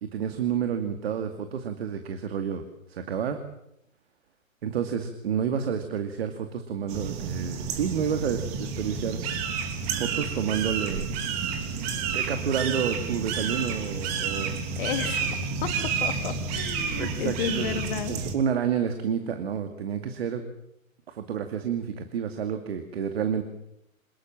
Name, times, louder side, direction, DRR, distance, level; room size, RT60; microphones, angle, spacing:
voice 1, 0.0-3.4 4.6-9.2 10.0-11.1 12.1-14.5 16.9-17.8 18.1-20.4 21.1-23.4, right 7 dB, 45° right, 7 dB, 2.4 m, -29 dB
sound 1, 6.9-18.4, right 5 dB, 30° right, 3.1 m, -30 dB
voice 2, 14.8-15.4 15.6-15.7 16.0-18.2, left 10 dB, 40° left, 9 dB, 2.0 m, -32 dB
27.0 x 19.5 x 7.5 m, 0.80 s
figure-of-eight pair, 140°, 41 cm